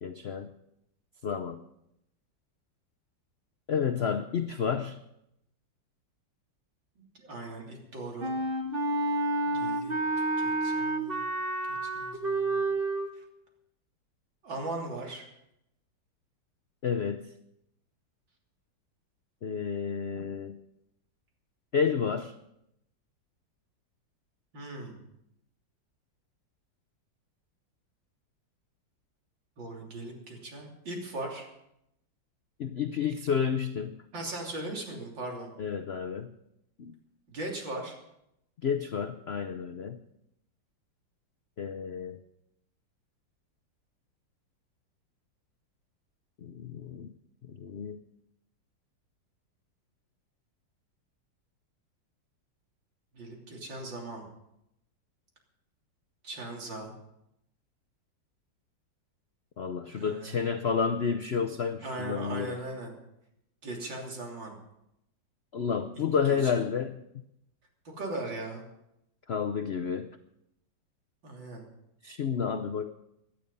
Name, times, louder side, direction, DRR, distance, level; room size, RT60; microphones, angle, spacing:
voice 1, 0.0-0.5 1.2-1.6 3.7-5.0 16.8-17.3 19.4-20.6 21.7-22.3 32.6-34.0 35.6-36.3 36.8-36.9 38.6-40.0 41.6-42.2 46.4-47.1 47.5-48.0 59.6-62.6 65.5-67.0 69.3-70.1 72.0-72.9, left 6 dB, 65° left, 8 dB, 0.6 m, -30 dB
voice 2, 7.0-8.4 9.5-11.2 11.7-12.7 14.4-15.3 24.5-25.0 29.6-31.5 34.1-35.5 37.3-38.0 53.1-54.2 56.2-56.9 60.0-60.5 61.8-62.9 63.6-64.6 66.2-66.6 67.9-68.6 71.2-71.6, right 2 dB, 75° right, -1 dB, 3.8 m, -39 dB
Wind instrument woodwind instrument, 8.2-13.1, right 2 dB, 30° right, 1.5 m, -29 dB
17.5 x 11.5 x 5.4 m, 0.82 s
omnidirectional pair, 2.0 m